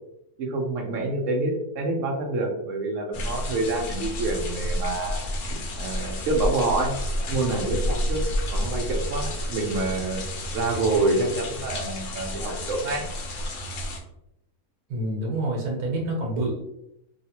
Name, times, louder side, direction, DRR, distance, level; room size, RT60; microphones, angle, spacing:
voice 1, 0.4-5.2 5.8-6.9 7.3-8.2 8.5-10.2 10.5-13.1, right 2 dB, 60° right, 1 dB, 1.1 m, -27 dB
sound 1, 3.1-14.0, equal, 65° left, 0.9 m, -30 dB
voice 2, 14.9-16.6, right 1 dB, 80° right, -1 dB, 1.4 m, -27 dB
3.3 x 2.4 x 2.8 m, 0.79 s
omnidirectional pair, 1.6 m